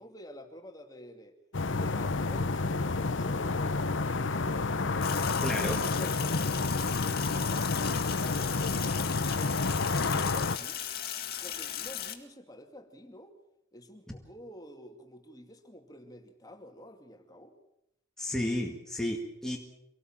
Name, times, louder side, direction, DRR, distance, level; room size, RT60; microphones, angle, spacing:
voice 1, 0.0-1.4 1.7-2.4 3.1-3.8 10.0-10.8 11.4-13.4 13.7-17.6, equal, 20° left, 4 dB, 2.6 m, -49 dB
sound 1, 1.5-10.6, left 3 dB, 80° left, 0.9 m, -29 dB
Sink (filling or washing), 5.0-12.1, left 10 dB, 50° left, 2.1 m, -37 dB
voice 2, 5.4-5.8 18.2-19.6, left 1 dB, 5° left, -1 dB, 2.1 m, -32 dB
25.5 x 18.5 x 7.5 m, 0.85 s
head